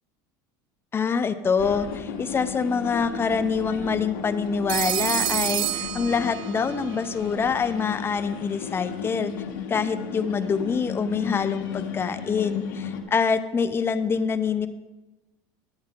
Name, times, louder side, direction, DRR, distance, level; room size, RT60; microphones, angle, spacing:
voice 1, 0.9-9.3 9.7-14.7, left 5 dB, 20° left, 11 dB, 0.6 m, -25 dB
sound 1, 1.6-13.0, left 6 dB, 85° left, 1.4 m, -34 dB
Telephone, 4.7-6.8, right 15 dB, 60° right, 0.5 m, -28 dB
10.5 x 8.6 x 3.7 m, 1.1 s
supercardioid pair, 120°, 10 cm